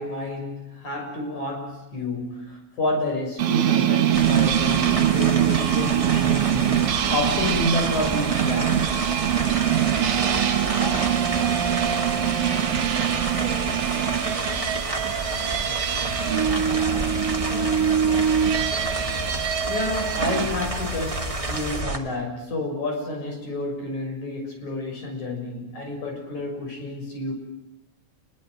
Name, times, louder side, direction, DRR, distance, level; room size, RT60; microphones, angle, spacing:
voice 1, 0.0-8.9 19.7-27.3, left 1 dB, 70° left, 3 dB, 7.8 m, -29 dB
sound 1, 3.4-20.5, right 10 dB, 55° right, 2.1 m, -23 dB
sound 2, 4.1-22.0, right 1 dB, 10° right, 1.9 m, -30 dB
voice 2, 9.6-12.5 12.8-18.3, left 2 dB, 15° left, 1 dB, 4.3 m, -41 dB
30.0 x 21.5 x 7.9 m, 0.86 s
omnidirectional pair, 3.5 m